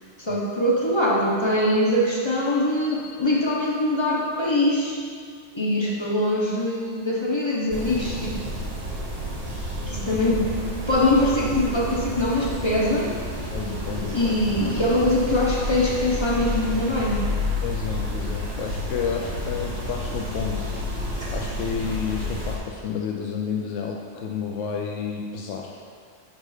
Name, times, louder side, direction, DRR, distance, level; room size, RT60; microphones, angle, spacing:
voice 1, 0.2-5.0 5.5-8.4 9.9-10.5 10.9-13.1 14.1-17.2, left 1 dB, 30° left, -4 dB, 0.7 m, -23 dB
sound 1, 7.7-22.6, left 1 dB, 55° right, 1.4 m, -30 dB
voice 2, 13.5-14.4 17.6-20.7 21.3-25.8, left 6 dB, 85° left, 1 dB, 0.9 m, -30 dB
6.3 x 4.2 x 4.8 m, 2.1 s
omnidirectional pair, 1.2 m